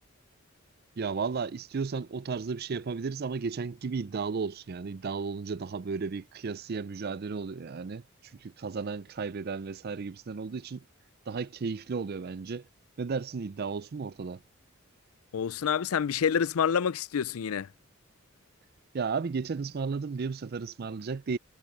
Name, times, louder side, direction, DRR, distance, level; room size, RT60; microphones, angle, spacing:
voice 1, 1.0-8.0 8.3-10.8 11.3-12.6 13.0-14.4 18.9-21.4, right 5 dB, 45° right, 0.4 m, -34 dB
voice 2, 15.3-17.7, left 7 dB, 90° left, 0.4 m, -27 dB
head